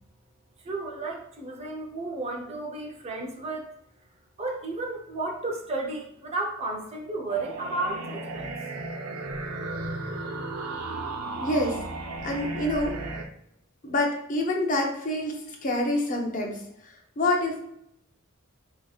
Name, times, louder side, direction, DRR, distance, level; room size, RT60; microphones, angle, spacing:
voice 1, 0.6-3.7 4.4-8.5, right 2 dB, 30° right, 1 dB, 0.6 m, -33 dB
sound 1, 7.3-13.2, right 2 dB, 85° right, 0.5 m, -34 dB
voice 2, 11.4-11.8 12.2-13.0 13.8-17.7, left 1 dB, 40° left, 2 dB, 0.6 m, -27 dB
5.0 x 2.8 x 2.3 m, 0.75 s
head